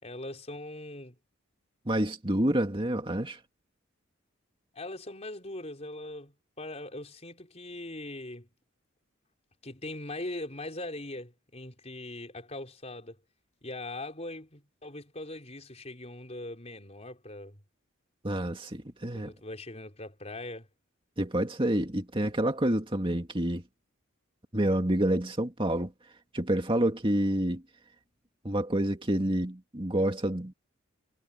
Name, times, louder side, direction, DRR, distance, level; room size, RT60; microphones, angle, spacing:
voice 1, 0.0-1.2 4.7-8.5 9.6-13.2 13.6-17.6 19.1-20.7, left 2 dB, 30° left, 4.8 m, -41 dB
voice 2, 1.9-3.4 18.2-19.3 21.2-23.6 24.5-25.9 26.3-27.6 28.4-30.5, right 1 dB, 25° right, 2.4 m, -28 dB
head